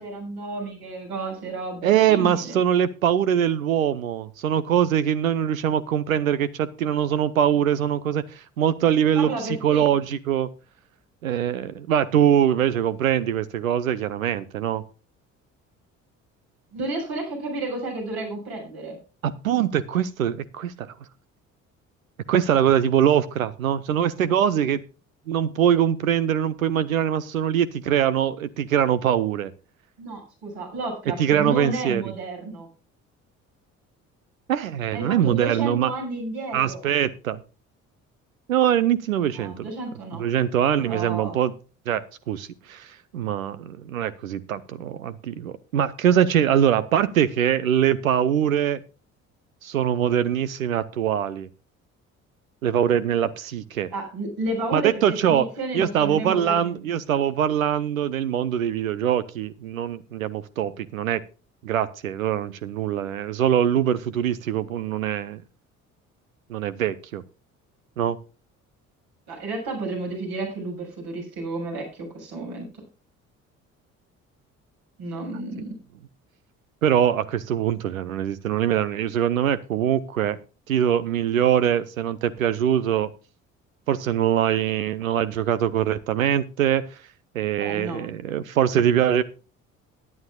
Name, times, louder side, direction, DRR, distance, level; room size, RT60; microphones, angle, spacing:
voice 1, 0.0-2.6 9.2-9.9 16.7-19.0 30.0-32.7 34.9-36.8 39.3-40.2 40.8-41.4 53.9-56.8 69.3-72.7 75.0-75.8 87.6-88.0, right 2 dB, 60° right, 2 dB, 6.7 m, -32 dB
voice 2, 1.8-10.5 11.2-14.8 19.2-20.9 22.3-24.8 25.3-29.5 31.2-32.0 34.5-35.9 36.5-37.4 38.5-39.7 40.2-41.5 41.9-48.8 49.6-51.5 52.6-53.9 54.7-55.5 55.7-61.2 61.6-65.4 66.5-67.2 68.0-68.2 76.8-80.4 80.7-83.1 83.9-87.0 87.3-89.2, right 9 dB, 80° right, 16 dB, 0.7 m, -23 dB
18.0 x 11.0 x 2.3 m, 0.33 s
figure-of-eight pair, 50°, 40 cm